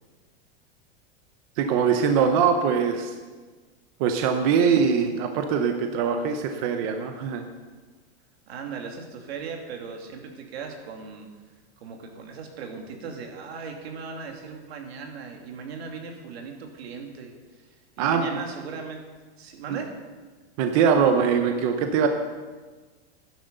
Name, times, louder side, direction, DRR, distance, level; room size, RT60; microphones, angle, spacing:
voice 1, 1.6-3.1 4.0-7.4 18.0-18.4 19.7-19.8 20.6-22.1, right 6 dB, 35° right, 6 dB, 0.8 m, -22 dB
voice 2, 8.5-11.3 11.8-19.0 19.4-19.9, right 5 dB, 75° right, 3 dB, 2.6 m, -38 dB
12.5 x 10.5 x 6.8 m, 1.4 s
supercardioid pair, 180°, 32 cm